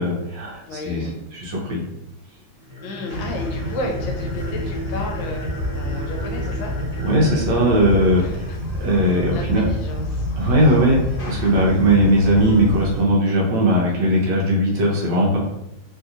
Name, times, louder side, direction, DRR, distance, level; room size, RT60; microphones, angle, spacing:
voice 1, 0.0-1.8 7.0-8.5 8.8-9.6 10.4-11.0 11.3-15.4, right 1 dB, 70° right, -3 dB, 1.4 m, -19 dB
voice 2, 0.7-1.2 2.8-6.8 8.2-8.6 9.0-10.3 11.7-11.8, left 1 dB, 80° left, 1 dB, 1.4 m, -33 dB
sound 1, 2.6-8.9, left 1 dB, 30° right, 1.7 m, -34 dB
sound 2, 3.1-13.0, left 1 dB, 65° left, 1.3 m, -28 dB
3.5 x 2.8 x 2.4 m, 0.84 s
omnidirectional pair, 2.1 m